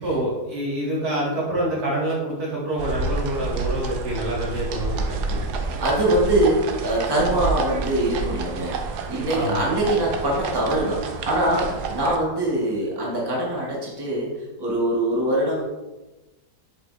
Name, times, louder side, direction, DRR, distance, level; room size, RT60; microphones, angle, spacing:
voice 1, 0.0-5.4 9.3-9.7, right 1 dB, 70° right, -6 dB, 2.6 m, -26 dB
sound 1, 2.8-12.2, right 4 dB, 90° right, 1.3 m, -29 dB
voice 2, 5.8-14.3 14.6-15.6, right 1 dB, 15° right, -5 dB, 1.5 m, -23 dB
7.4 x 6.9 x 2.6 m, 1.1 s
omnidirectional pair, 1.7 m